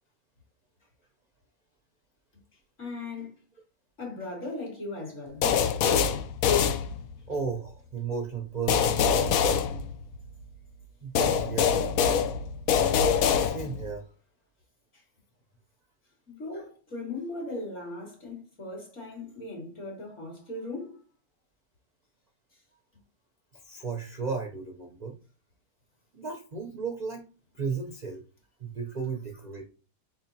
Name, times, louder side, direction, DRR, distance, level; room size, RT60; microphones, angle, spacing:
voice 1, 2.8-3.3 4.0-5.5 16.3-21.0, left 2 dB, 50° left, 2.4 m, -38 dB
sound 1, 5.4-7.3 8.7-10.4 11.2-13.9, left 7 dB, 75° left, 1.0 m, -25 dB
voice 2, 7.3-9.4 11.0-11.8 13.4-14.1 16.5-16.6 23.5-25.2 26.1-27.2 27.5-28.2 28.6-29.7, right 5 dB, 45° right, 0.6 m, -34 dB
4.5 x 4.2 x 2.7 m
omnidirectional pair, 1.6 m